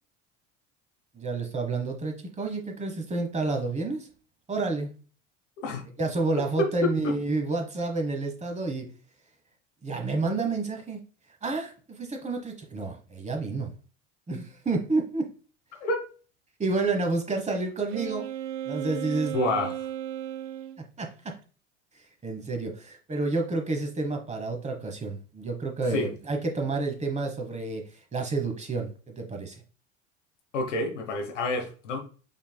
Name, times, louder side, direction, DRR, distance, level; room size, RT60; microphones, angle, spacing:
voice 1, 1.1-4.1 4.5-4.9 6.0-8.9 9.8-11.0 11.4-13.7 14.3-15.3 16.6-18.3 18.7-19.4 20.8-21.1 22.2-27.8 28.1-29.5, right 3 dB, 20° right, 4 dB, 1.0 m, -29 dB
voice 2, 6.4-7.2 15.8-16.1 19.3-19.9 25.9-26.1 30.5-32.0, left 2 dB, 85° left, 3 dB, 1.1 m, -28 dB
Wind instrument woodwind instrument, 17.9-20.8, right 11 dB, 75° right, 0.5 m, -35 dB
5.3 x 3.4 x 2.2 m, 0.37 s
hypercardioid pair, 80°, 36 cm